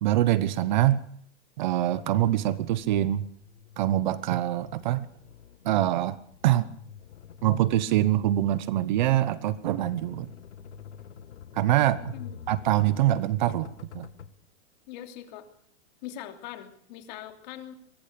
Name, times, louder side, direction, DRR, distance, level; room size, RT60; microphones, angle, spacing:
voice 1, 0.0-1.0 1.6-3.3 3.8-5.1 5.6-6.2 6.4-6.7 7.4-10.3 11.5-12.1 12.5-14.1, right 13 dB, 40° right, 16 dB, 1.0 m, -24 dB
sound 1, 1.9-14.3, left 8 dB, 75° left, 2.1 m, -47 dB
voice 2, 14.9-15.5 16.0-17.7, left 11 dB, 40° left, 6 dB, 3.1 m, -41 dB
23.5 x 21.0 x 6.9 m, 0.64 s
hypercardioid pair, 160°, 35 cm